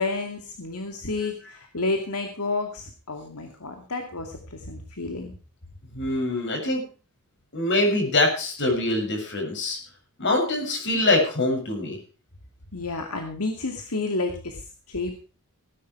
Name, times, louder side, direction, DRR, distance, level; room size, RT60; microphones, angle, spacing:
voice 1, 0.0-5.3 6.3-6.4 12.7-15.2, left 3 dB, 80° left, 4 dB, 2.4 m, -30 dB
voice 2, 5.9-6.8 7.5-9.8 10.2-12.0, left 2 dB, 55° left, 3 dB, 7.2 m, -24 dB
18.0 x 10.5 x 4.6 m, 0.36 s
head